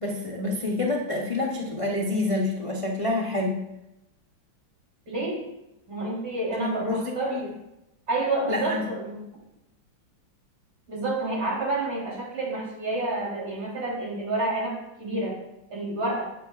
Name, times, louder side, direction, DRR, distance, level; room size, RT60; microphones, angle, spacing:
voice 1, 0.0-3.6 6.6-7.5 8.5-8.8, left 2 dB, 45° left, -2 dB, 0.4 m, -28 dB
voice 2, 5.1-5.4 5.9-7.4 8.1-9.3 10.9-15.4 15.7-16.2, right 2 dB, 85° right, -4 dB, 4.2 m, -29 dB
12.0 x 8.7 x 2.4 m, 0.91 s
omnidirectional pair, 2.2 m